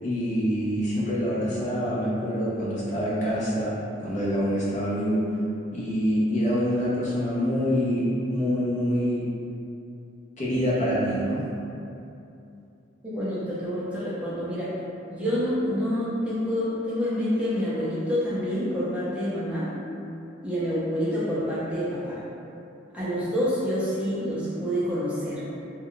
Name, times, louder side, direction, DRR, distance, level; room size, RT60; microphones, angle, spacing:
voice 1, 0.0-5.2 5.7-9.3 10.4-11.5, equal, 40° left, -7 dB, 0.6 m, -26 dB
voice 2, 13.0-14.7 15.1-19.7 20.4-22.2 22.9-25.4, equal, 5° right, -10 dB, 0.5 m, -27 dB
2.3 x 2.2 x 3.7 m, 2.7 s
head